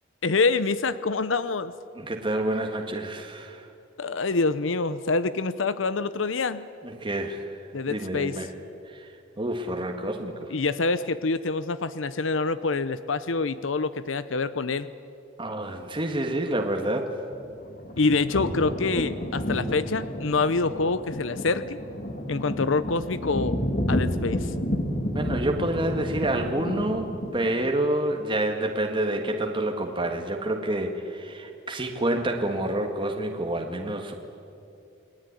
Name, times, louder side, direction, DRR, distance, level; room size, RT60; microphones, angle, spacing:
voice 1, 0.2-1.7 4.0-6.6 7.7-8.4 10.5-14.9 18.0-21.8 22.3-23.6 23.9-24.5, left 3 dB, 80° left, 14 dB, 0.8 m, -26 dB
voice 2, 2.0-3.7 6.8-7.5 7.9-8.5 8.9-10.5 15.4-17.1 25.1-34.1, right 1 dB, 25° right, 2 dB, 1.8 m, -28 dB
sound 1, 17.3-27.7, equal, 45° left, 2.5 m, -31 dB
29.0 x 19.5 x 9.9 m, 2.6 s
head